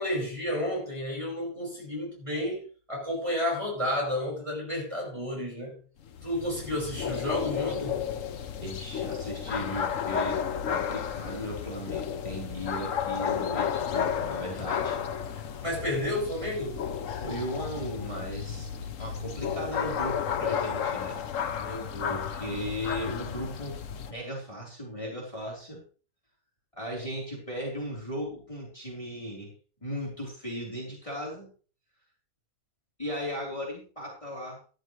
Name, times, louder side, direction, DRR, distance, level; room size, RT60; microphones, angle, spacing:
voice 1, 0.0-5.8 6.2-8.1 14.3-14.7 15.6-16.8 21.5-22.2, left 1 dB, 20° right, 5.5 m, -32 dB
sound 1, 6.0-24.1, left 8 dB, 55° left, 1.2 m, -32 dB
voice 2, 8.6-15.0 17.2-21.2 22.1-23.8 24.1-25.8 26.7-29.5 29.8-31.5 33.0-34.6, equal, 20° left, 3.9 m, -37 dB
13.5 x 13.0 x 3.2 m
omnidirectional pair, 1.7 m